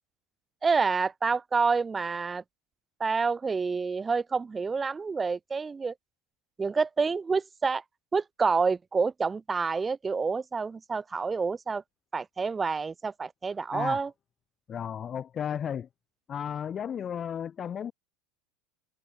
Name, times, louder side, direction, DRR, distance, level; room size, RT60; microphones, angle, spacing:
voice 1, 0.6-2.4 3.0-5.9 6.6-7.8 8.1-11.8 12.1-14.1, right 4 dB, 20° right, 3.1 m, -28 dB
voice 2, 13.7-14.0 14.7-15.9 16.3-17.9, left 8 dB, 30° left, 3.1 m, -34 dB
figure-of-eight pair, 80°, 0 cm